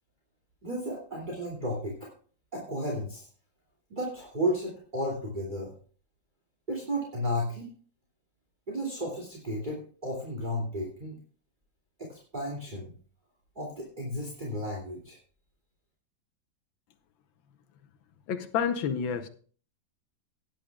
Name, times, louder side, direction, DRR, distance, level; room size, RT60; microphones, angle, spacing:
voice 1, 0.6-2.1 2.5-3.3 3.9-5.7 6.7-7.7 8.7-11.2 12.0-12.9 13.5-15.2, equal, 25° right, -3 dB, 2.8 m, -33 dB
voice 2, 18.3-19.3, left 7 dB, 80° left, 9 dB, 1.7 m, -29 dB
17.5 x 10.5 x 2.3 m, 0.42 s
omnidirectional pair, 2.1 m